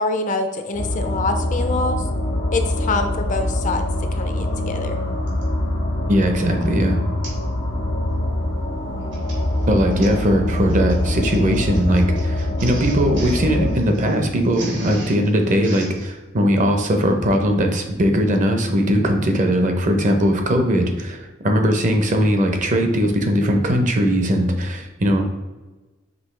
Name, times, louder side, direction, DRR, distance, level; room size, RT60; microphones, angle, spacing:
voice 1, 0.0-2.0 2.5-3.8 4.1-5.0, left 3 dB, 45° left, 6 dB, 0.4 m, -25 dB
sound 1, 0.7-13.7, left 1 dB, 75° left, 0.8 m, -24 dB
Printer, 5.3-5.5 6.1-6.4 6.6-6.7 7.2-7.5 7.8-8.1 8.9-16.1, right 3 dB, 75° right, 1.2 m, -40 dB
voice 2, 6.1-7.0 9.7-21.2 21.4-25.2, equal, 45° right, 4 dB, 0.6 m, -19 dB
5.2 x 3.1 x 3.1 m, 1.2 s
head